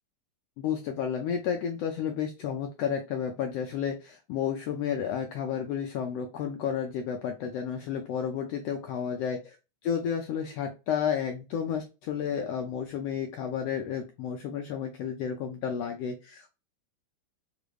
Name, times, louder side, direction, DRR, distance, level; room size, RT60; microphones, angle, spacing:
voice 1, 0.6-9.6 9.8-16.5, left 8 dB, 90° left, 4 dB, 1.4 m, -31 dB
4.9 x 2.4 x 3.2 m, 0.30 s
omnidirectional pair, 3.4 m